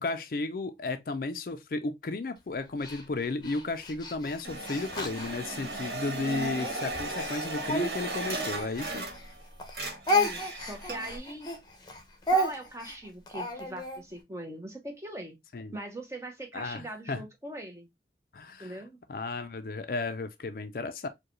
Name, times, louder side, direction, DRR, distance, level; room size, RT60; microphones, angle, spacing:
voice 1, 0.0-9.0 15.5-15.8 16.5-17.2 18.3-18.8 19.1-21.1, left 3 dB, 55° left, 0.4 m, -34 dB
Speech, 2.8-5.9 6.5-9.3 9.6-14.0, equal, 25° left, 0.8 m, -32 dB
sound 1, 4.4-9.4 9.7-11.2, right 2 dB, 65° right, 1.3 m, -36 dB
voice 2, 10.1-11.5 12.3-15.4 15.7-17.9 18.6-19.0, right 1 dB, 15° right, 0.8 m, -41 dB
4.6 x 2.2 x 3.0 m
head